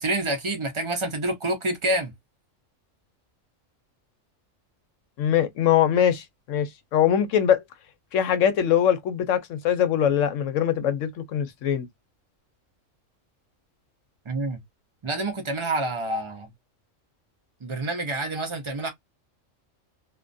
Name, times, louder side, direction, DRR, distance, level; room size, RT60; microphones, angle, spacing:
voice 1, 0.0-2.1 14.3-14.6 15.0-16.5 17.6-18.9, right 2 dB, 35° right, 0.5 m, -27 dB
voice 2, 5.2-7.6 8.1-11.9, left 9 dB, 75° left, 0.9 m, -22 dB
2.4 x 2.2 x 2.4 m
omnidirectional pair, 1.4 m